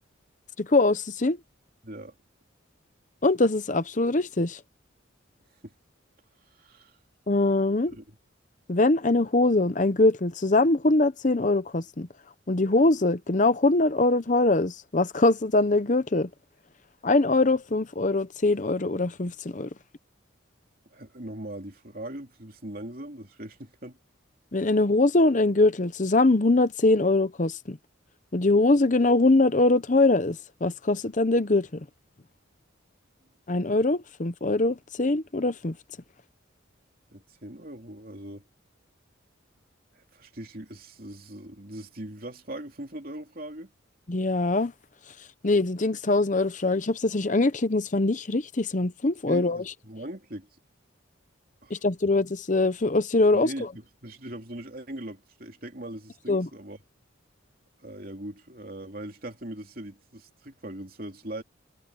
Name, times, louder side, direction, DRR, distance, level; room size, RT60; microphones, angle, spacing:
voice 1, 0.6-1.4 3.2-4.6 7.3-8.0 8.7-12.1 12.5-16.3 17.0-19.7 24.5-27.8 28.3-31.8 33.5-35.7 44.1-44.7 45.4-49.6 51.7-53.7 56.3-56.5, left 2 dB, 40° left, 0.8 m, -23 dB
voice 2, 1.8-2.1 5.6-5.7 6.5-6.9 7.9-8.2 20.9-24.0 37.1-38.4 39.9-43.7 49.3-50.5 51.6-51.8 53.3-56.8 57.8-61.4, right 1 dB, 45° right, 3.2 m, -40 dB
head